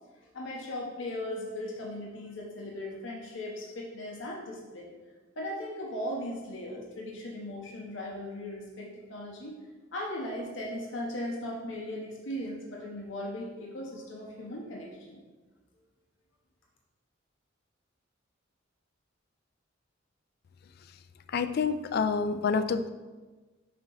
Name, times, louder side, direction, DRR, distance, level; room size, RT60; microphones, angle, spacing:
voice 1, 0.2-4.9 5.4-9.6 9.9-15.2, left 1 dB, 70° left, -1 dB, 0.9 m, -38 dB
voice 2, 21.3-22.9, left 5 dB, 50° left, 11 dB, 0.3 m, -28 dB
6.7 x 2.9 x 5.3 m, 1.3 s
head